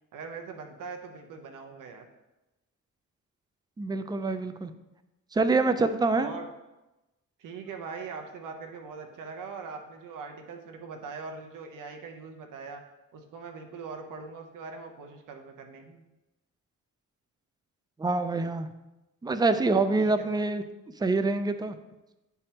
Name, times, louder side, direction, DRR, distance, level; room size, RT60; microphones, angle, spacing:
voice 1, 0.1-2.1 6.1-6.5 7.4-12.8 13.1-16.0 20.0-20.5, right 4 dB, 65° right, 4 dB, 0.8 m, -41 dB
voice 2, 3.8-4.7 5.3-6.3 18.0-18.7 19.2-20.6 21.0-21.8, right 3 dB, 15° right, 10 dB, 0.4 m, -25 dB
9.5 x 3.5 x 2.8 m, 1.0 s
cardioid pair, 80°, 34 cm